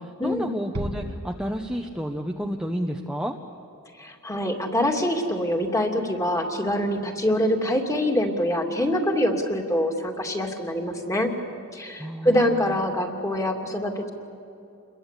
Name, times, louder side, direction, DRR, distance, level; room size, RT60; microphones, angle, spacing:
voice 1, 0.0-3.4 12.0-12.8, equal, 5° right, 2 dB, 1.0 m, -31 dB
Bass drum, 0.7-2.2, right 1 dB, 75° right, 1.5 m, -35 dB
voice 2, 4.0-11.3 11.7-14.1, left 1 dB, 15° left, 2 dB, 2.6 m, -25 dB
29.0 x 22.0 x 8.4 m, 2.7 s
head